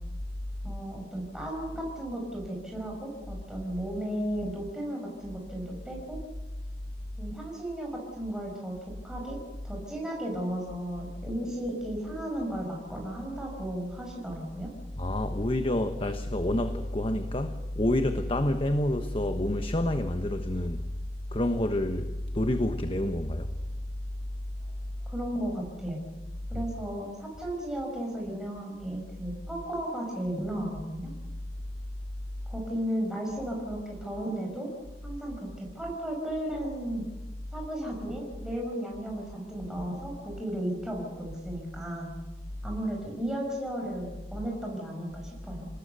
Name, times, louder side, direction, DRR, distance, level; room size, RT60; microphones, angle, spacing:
voice 1, 0.6-6.2 7.2-9.4 9.6-14.7 25.1-26.0 26.5-31.1 32.5-34.7 35.0-37.1 37.5-42.1 42.6-45.7, right 1 dB, 5° right, 5.6 m, -34 dB
voice 2, 15.0-20.9 21.3-23.5 26.5-26.7, left 1 dB, 30° left, 1.2 m, -28 dB
29.5 x 19.5 x 6.9 m
head